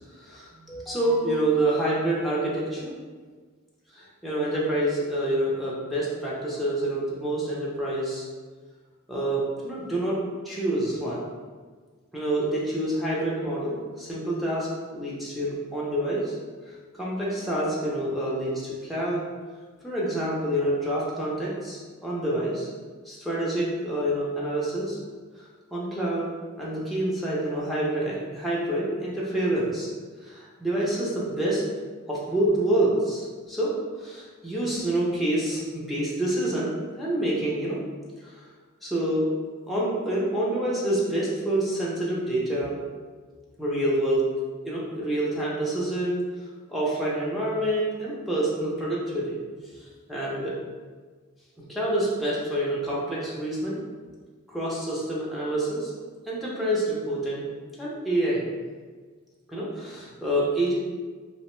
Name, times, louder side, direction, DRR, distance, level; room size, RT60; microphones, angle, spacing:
voice 1, 0.2-2.9 3.9-8.2 9.1-10.2 10.4-11.2 12.1-16.3 16.9-19.2 19.8-22.7 23.1-25.0 25.7-26.3 26.6-29.9 30.2-31.6 32.1-37.8 38.2-38.4 38.8-39.2 39.7-42.8 43.6-44.2 44.7-46.2 46.7-49.4 49.8-50.5 51.6-53.8 54.5-55.9 56.3-57.5 57.8-58.5 59.5-60.8, right 1 dB, ahead, -7 dB, 0.5 m, -27 dB
2.9 x 2.1 x 3.0 m, 1.5 s
head